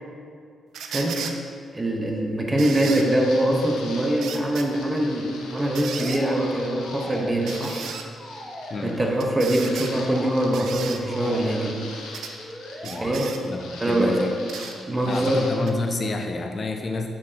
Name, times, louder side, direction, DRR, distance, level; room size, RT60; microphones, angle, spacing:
sound 1, 0.7-1.4 2.6-3.1 4.2-4.7 5.8-6.2 7.5-8.1 9.2-9.9 10.5-11.0 12.1-12.3 12.8-13.4 14.5-14.8 15.7-15.8, right 6 dB, 80° right, 0.4 m, -35 dB
voice 1, 0.9-1.2 1.7-7.8 8.8-11.8 13.0-13.3 13.8-14.3 14.9-15.4, right 1 dB, 20° right, 0 dB, 1.0 m, -23 dB
sound 2, 2.7-10.7 11.0-15.7 16.0-16.1, left 3 dB, 90° left, 0.7 m, -42 dB
sound 3, 5.4-6.5 6.8-7.8 8.0-9.1 9.5-10.4 10.8-11.8 12.4-13.1, equal, ahead, 1.3 m, -39 dB
voice 2, 12.8-14.4 15.1-17.1, left 3 dB, 45° left, 4 dB, 0.5 m, -29 dB
7.2 x 4.7 x 2.9 m, 2.4 s
supercardioid pair, 65°, 0 cm